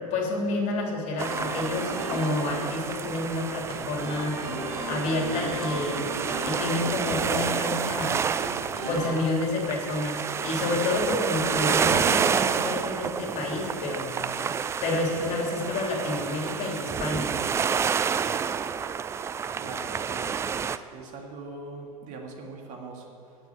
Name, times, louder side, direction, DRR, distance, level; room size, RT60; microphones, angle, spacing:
voice 1, 0.0-4.4 4.8-6.1 6.4-8.2 8.9-14.1 14.8-17.3, left 2 dB, 40° left, -1 dB, 3.2 m, -29 dB
sound 1, 1.2-20.8, right 7 dB, 15° right, 0.3 m, -29 dB
sound 2, 1.2-9.1, equal, 75° right, 2.9 m, -36 dB
voice 2, 19.5-20.4 20.7-23.4, right 3 dB, 40° right, 1 dB, 1.9 m, -42 dB
9.2 x 8.7 x 8.8 m, 2.7 s
figure-of-eight pair, 85°, 19 cm